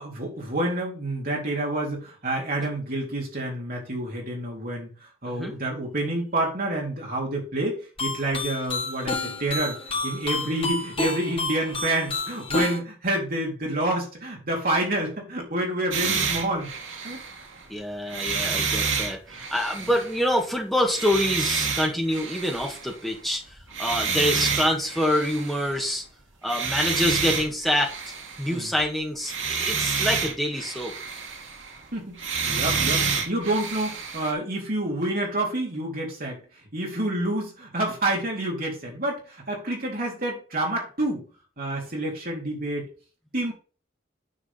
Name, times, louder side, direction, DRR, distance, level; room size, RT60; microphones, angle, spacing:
voice 1, 0.0-4.9 5.2-9.8 10.0-16.7 17.0-17.2 28.5-28.7 31.9-36.4 36.7-41.2 41.6-42.9 43.3-43.5, right 1 dB, 45° right, -2 dB, 3.9 m, -28 dB
voice 2, 5.3-5.6 17.7-26.0 26.4-27.9 28.4-31.0, equal, ahead, 1 dB, 1.8 m, -26 dB
sound 1, 8.0-12.8, left 2 dB, 30° left, 1.8 m, -30 dB
sound 2, 15.9-17.6 18.1-20.4 20.9-23.3 23.6-25.9 26.4-28.9 29.2-31.8 32.2-34.3, right 5 dB, 75° right, 2.1 m, -29 dB
9.8 x 5.1 x 5.6 m, 0.37 s
head